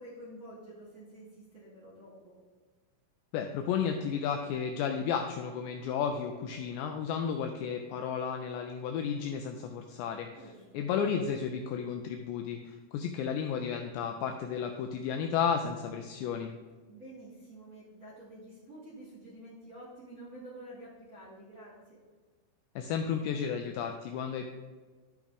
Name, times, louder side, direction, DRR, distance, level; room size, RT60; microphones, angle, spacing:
voice 1, 0.0-2.3 10.3-10.9 16.9-21.7, right 1 dB, 25° right, -8 dB, 2.2 m, -49 dB
voice 2, 3.3-10.3 10.7-16.5 22.8-24.5, left 7 dB, 85° left, 4 dB, 2.6 m, -33 dB
12.0 x 5.9 x 3.6 m, 1.4 s
omnidirectional pair, 5.5 m